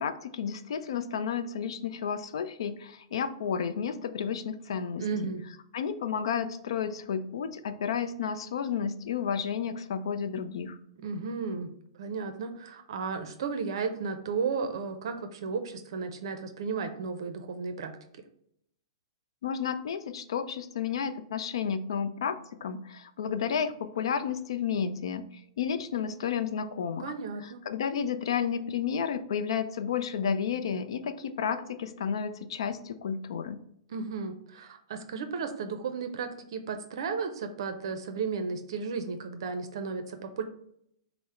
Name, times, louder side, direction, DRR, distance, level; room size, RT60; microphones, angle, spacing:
voice 1, 0.0-5.0 5.7-10.8 19.4-27.1 27.4-33.6, left 7 dB, 75° left, 10 dB, 0.4 m, -32 dB
voice 2, 5.0-5.4 11.0-11.7 12.0-17.9 27.0-27.6 33.9-40.4, right 5 dB, 65° right, 7 dB, 0.5 m, -34 dB
4.8 x 2.0 x 4.2 m, 0.71 s
hypercardioid pair, 150°, 3 cm